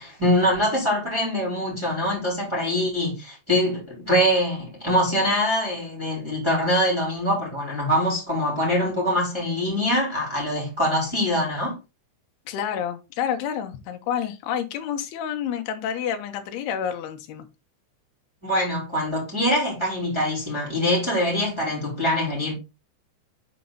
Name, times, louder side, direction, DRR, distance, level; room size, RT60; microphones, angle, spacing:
voice 1, 0.0-11.7 18.4-22.5, equal, 5° right, 3.0 m, -24 dB
voice 2, 12.5-17.5, left 8 dB, 70° left, 2.8 m, -29 dB
7.9 x 4.5 x 4.0 m
omnidirectional pair, 5.3 m